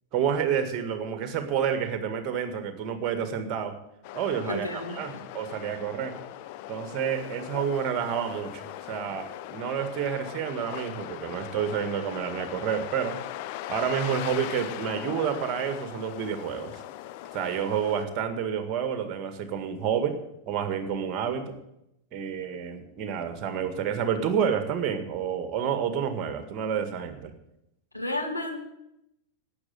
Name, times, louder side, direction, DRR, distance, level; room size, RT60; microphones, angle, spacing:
voice 1, 0.1-3.7 4.1-6.2 6.7-13.2 13.7-16.8 17.3-20.2 20.5-21.6 22.1-27.3, right 8 dB, 35° right, 9 dB, 1.8 m, -29 dB
sound 1, 4.0-18.1, left 14 dB, 45° left, 0.7 m, -39 dB
voice 2, 4.5-5.2 27.9-28.6, left 1 dB, 90° left, 2 dB, 1.9 m, -32 dB
12.0 x 8.7 x 9.2 m, 0.82 s
figure-of-eight pair, 90°, 0 cm